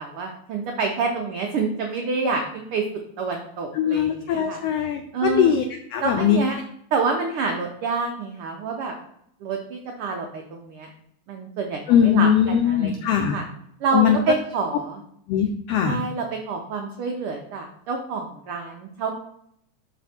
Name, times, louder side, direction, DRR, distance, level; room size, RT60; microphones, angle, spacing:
voice 1, 0.0-2.8 3.2-4.6 5.1-5.5 6.0-6.6 6.9-8.9 9.4-10.9 11.3-13.0 13.3-13.4 13.8-15.0 15.8-19.1, right 4 dB, 85° right, 2 dB, 1.2 m, -27 dB
voice 2, 3.7-5.7 5.9-6.4 11.9-13.4 13.9-14.2 15.3-16.0, left 9 dB, 90° left, 5 dB, 1.3 m, -20 dB
6.0 x 4.6 x 4.2 m, 0.70 s
omnidirectional pair, 3.4 m